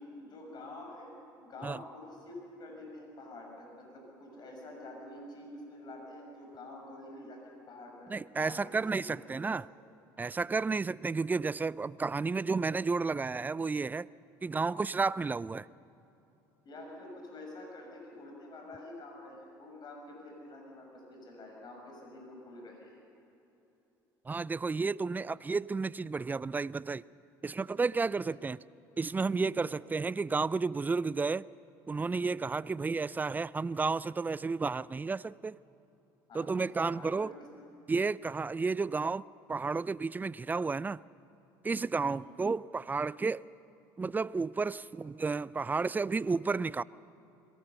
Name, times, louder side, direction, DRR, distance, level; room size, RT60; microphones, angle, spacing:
voice 1, 0.2-9.1 9.4-9.6 16.6-23.0 29.6-29.8 36.3-37.3 42.0-42.3, left 2 dB, 45° left, 6.1 m, -48 dB
voice 2, 8.1-9.7 10.2-14.1 14.4-15.7 24.3-27.0 27.4-28.6 29.0-31.5 31.9-35.6 36.3-37.3 37.9-39.2 39.5-41.0 41.6-43.4 44.0-46.8, right 4 dB, 20° right, 0.4 m, -32 dB
22.5 x 17.5 x 6.9 m
hypercardioid pair, 70°, 10 cm